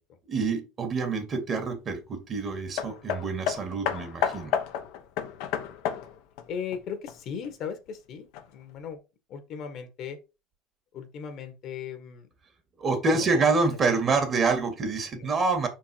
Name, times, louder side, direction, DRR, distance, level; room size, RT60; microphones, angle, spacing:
voice 1, 0.3-4.5 12.8-15.7, right 4 dB, 40° right, 6 dB, 2.1 m, -26 dB
Hammer, 2.8-7.5 8.3-8.4, left 9 dB, 75° left, 1.0 m, -31 dB
voice 2, 6.5-8.3 8.5-9.0 9.3-10.2 10.9-12.3 13.1-13.8 14.1-14.2 15.1-15.4, left 7 dB, 60° left, 9 dB, 1.5 m, -38 dB
5.6 x 4.7 x 4.6 m, 0.28 s
supercardioid pair, 85°, 0 cm